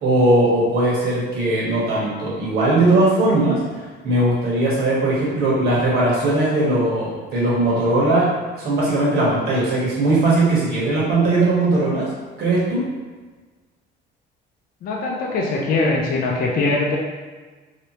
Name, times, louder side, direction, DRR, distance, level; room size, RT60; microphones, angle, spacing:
voice 1, 0.0-3.6 4.0-8.3 8.5-12.1 12.4-12.8, right 2 dB, 60° right, -6 dB, 1.2 m, -19 dB
voice 2, 14.8-17.0, left 3 dB, 50° left, -2 dB, 0.5 m, -21 dB
3.2 x 2.8 x 2.9 m, 1.4 s
cardioid pair, 165°, 19 cm